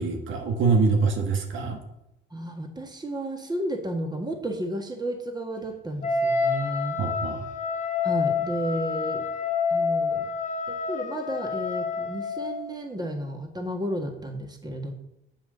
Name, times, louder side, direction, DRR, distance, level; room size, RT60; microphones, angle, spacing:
voice 1, 0.0-1.8 7.0-7.4, right 4 dB, 75° right, 4 dB, 1.5 m, -24 dB
voice 2, 2.3-7.0 8.0-9.2 9.7-10.3 10.7-14.9, right 1 dB, 20° right, 5 dB, 1.5 m, -32 dB
Wind instrument woodwind instrument, 6.0-12.6, left 5 dB, 40° left, 1.6 m, -28 dB
7.4 x 5.6 x 6.6 m, 0.82 s
cardioid pair, 90°, 20 cm